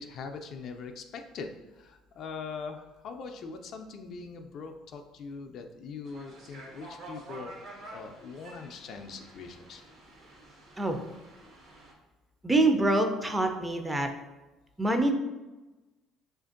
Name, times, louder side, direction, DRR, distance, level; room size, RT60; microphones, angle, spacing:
voice 1, 0.0-7.6 7.9-9.8, left 4 dB, 55° left, 6 dB, 0.3 m, -42 dB
sound 1, 6.0-11.9, right 1 dB, 65° right, 1.0 m, -49 dB
voice 2, 12.4-14.1 14.8-15.1, right 2 dB, 10° right, 5 dB, 0.4 m, -25 dB
5.0 x 2.5 x 2.5 m, 1.1 s
supercardioid pair, 100°, 0 cm